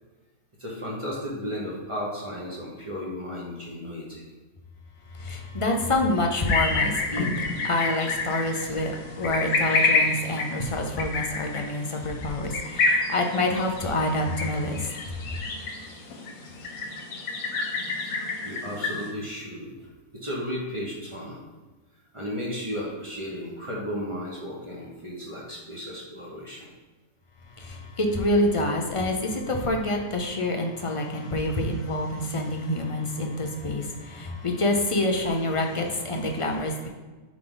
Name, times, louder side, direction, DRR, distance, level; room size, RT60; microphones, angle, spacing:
voice 1, 0.6-4.2 18.4-19.9 20.1-21.4 22.1-26.7, equal, 25° right, -5 dB, 1.3 m, -34 dB
voice 2, 5.1-15.3 27.5-36.9, left 1 dB, 35° left, 3 dB, 0.5 m, -27 dB
sound 1, 6.5-19.1, left 3 dB, 85° left, 1.4 m, -28 dB
9.2 x 3.7 x 3.9 m, 1.3 s
omnidirectional pair, 1.4 m